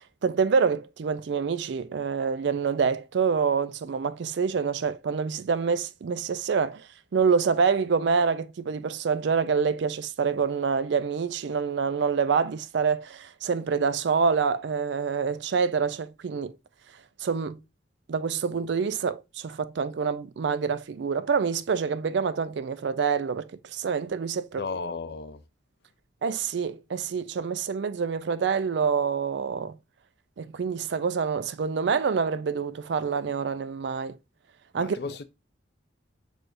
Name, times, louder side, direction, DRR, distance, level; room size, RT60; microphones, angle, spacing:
voice 1, 0.0-16.5 17.2-17.6 18.1-24.6 26.2-29.8 30.4-34.2 34.7-35.0, right 5 dB, 70° right, 0.4 m, -26 dB
voice 2, 24.6-25.4 34.8-35.2, left 4 dB, 55° left, 0.5 m, -34 dB
6.2 x 3.3 x 2.5 m
head